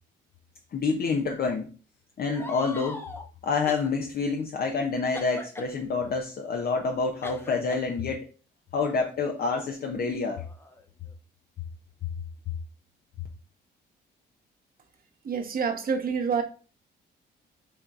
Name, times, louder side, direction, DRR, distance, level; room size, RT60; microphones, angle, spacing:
voice 1, 0.7-1.7 2.2-3.1 3.4-8.3 8.7-10.4, left 4 dB, 50° left, 3 dB, 0.7 m, -28 dB
sound 1, 2.3-3.3 3.7-3.9 5.1-5.7 7.2-7.8 8.8-9.0 9.9-11.1, left 2 dB, 10° left, 0.7 m, -41 dB
voice 2, 15.2-16.4, right 6 dB, 45° right, 6 dB, 1.0 m, -27 dB
6.2 x 3.2 x 2.5 m, 0.36 s
cardioid pair, 90°, 20 cm